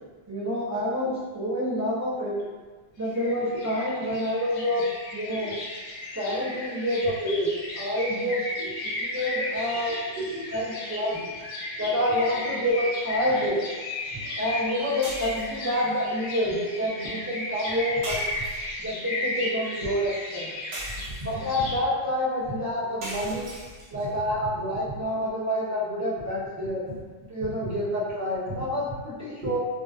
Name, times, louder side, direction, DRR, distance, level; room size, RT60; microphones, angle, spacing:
voice 1, 0.3-2.3 3.0-4.8 5.1-5.5 6.1-7.5 7.7-8.5 9.0-10.0 10.5-11.2 11.8-13.6 14.4-18.2 18.8-20.5 21.2-23.5 23.9-26.8 27.3-29.6, left 1 dB, 25° right, -9 dB, 0.3 m, -28 dB
sound 1, 3.0-21.8, left 1 dB, 70° left, 0.8 m, -35 dB
voice 2, 5.3-5.6 6.2-6.6 8.6-9.0 9.9-10.5 11.2-11.3 11.7-11.9 13.2-13.4 14.0-14.4 21.0-21.3 23.9-24.0 28.5-28.7 29.4-29.5, right 1 dB, 55° right, -10 dB, 0.8 m, -39 dB
sound 2, 15.0-15.7 18.0-18.9 20.7-21.5 23.0-24.1, equal, 85° right, 0.9 m, -37 dB
2.4 x 2.2 x 2.3 m, 1.3 s
omnidirectional pair, 1.1 m